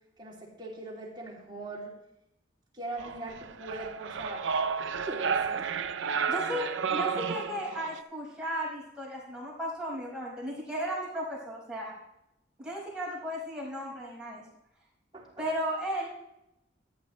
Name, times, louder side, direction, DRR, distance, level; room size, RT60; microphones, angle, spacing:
voice 1, 0.2-1.9 2.8-4.5 4.9-5.7 15.1-15.5, right 2 dB, 25° right, -4 dB, 2.8 m, -40 dB
sound 1, 3.0-8.0, right 6 dB, 75° right, 0.6 m, -32 dB
voice 2, 6.3-11.9 12.6-14.4 15.4-16.1, equal, 5° right, -6 dB, 5.1 m, -35 dB
14.0 x 11.0 x 3.1 m, 0.84 s
head